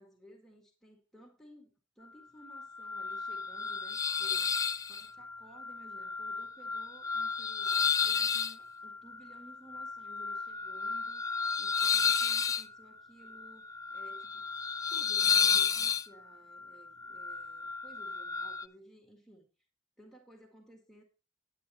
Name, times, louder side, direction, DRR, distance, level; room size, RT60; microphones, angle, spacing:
voice 1, 0.0-4.6 4.9-13.7 13.9-14.4 14.9-19.5 20.0-21.0, right 1 dB, ahead, 1.7 m, -57 dB
sound 1, 2.5-18.7, left 6 dB, 20° left, 0.4 m, -32 dB
9.6 x 8.9 x 4.0 m
head